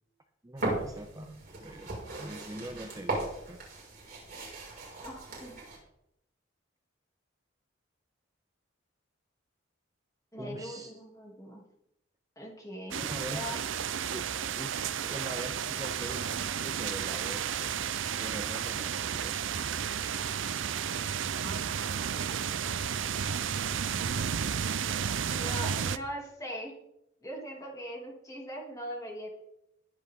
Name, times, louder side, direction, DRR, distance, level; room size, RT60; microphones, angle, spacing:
voice 1, 0.4-3.6 10.4-10.9 12.9-13.5 14.1-14.3 14.6-17.7 18.2-20.7, right 1 dB, 15° right, 6 dB, 0.7 m, -43 dB
sound 1, 0.6-5.8, right 2 dB, 45° right, 5.9 m, -37 dB
voice 2, 5.0-5.6 10.3-11.6 12.4-13.0 13.3-13.6 25.3-26.7 27.2-29.3, equal, 15° left, -1 dB, 2.9 m, -41 dB
sound 2, 12.9-26.0, right 8 dB, 75° right, 0.6 m, -32 dB
20.5 x 8.2 x 3.8 m, 0.80 s
head